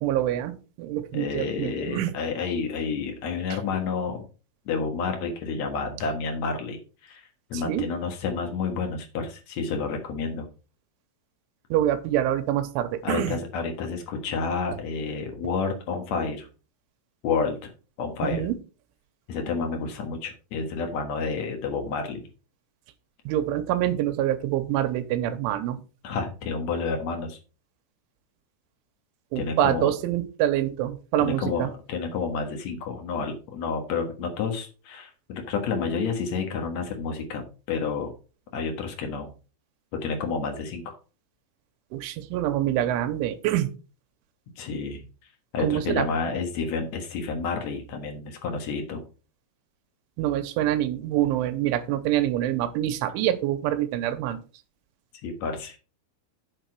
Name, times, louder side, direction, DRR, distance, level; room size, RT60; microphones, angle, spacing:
voice 1, 0.0-2.1 7.5-7.9 11.7-13.4 18.2-18.5 23.3-25.8 29.3-31.7 41.9-43.7 45.6-46.1 50.2-54.4, right 12 dB, 85° right, 8 dB, 3.2 m, -26 dB
voice 2, 1.1-4.3 4.6-10.5 13.0-16.5 17.2-17.7 18.0-18.5 19.3-22.2 26.0-27.4 29.3-30.0 31.2-38.1 38.5-39.3 39.9-41.0 44.6-45.1 45.5-49.0 55.2-55.8, left 5 dB, 80° left, 4 dB, 1.5 m, -30 dB
9.2 x 6.0 x 4.7 m, 0.35 s
omnidirectional pair, 5.6 m